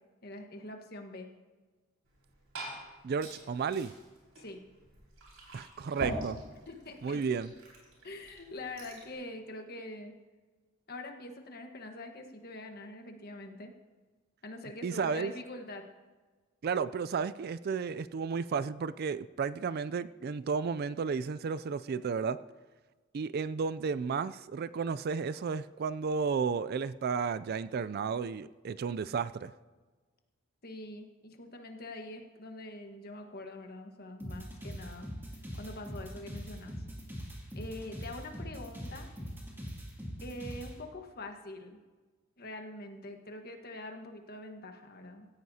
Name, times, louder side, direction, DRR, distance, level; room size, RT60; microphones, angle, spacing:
voice 1, 0.2-1.3 4.4-4.6 6.7-7.2 8.0-10.1 10.9-13.7 14.4-15.9 30.6-35.1 35.5-36.7 37.5-39.1 40.2-41.8 42.4-45.3, left 1 dB, 50° left, 4 dB, 1.3 m, -44 dB
Glass / Fill (with liquid), 2.0-9.1, right 2 dB, 85° right, 5.1 m, -44 dB
voice 2, 3.0-3.9 5.5-6.4 7.0-7.5 14.8-15.3 16.6-22.4 23.1-29.5, right 5 dB, 50° right, 16 dB, 0.3 m, -33 dB
sound 1, 34.2-40.7, equal, 10° right, 2.4 m, -42 dB
17.0 x 14.5 x 2.8 m, 1.3 s
head